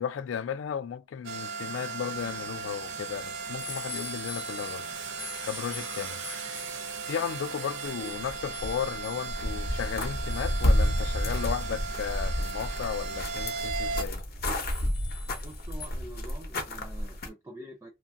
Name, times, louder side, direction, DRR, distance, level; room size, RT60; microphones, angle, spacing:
voice 1, 0.0-4.9 5.4-6.2 7.1-14.2, left 7 dB, 75° left, 0.3 m, -34 dB
sound 1, 1.2-14.0, right 5 dB, 70° right, 0.5 m, -37 dB
sound 2, 2.1-15.9, left 5 dB, 20° left, 0.8 m, -47 dB
sound 3, 7.9-9.0 9.2-17.3, equal, 50° left, 0.8 m, -30 dB
voice 2, 15.4-17.9, right 1 dB, 15° right, 0.4 m, -46 dB
2.8 x 2.3 x 2.6 m
head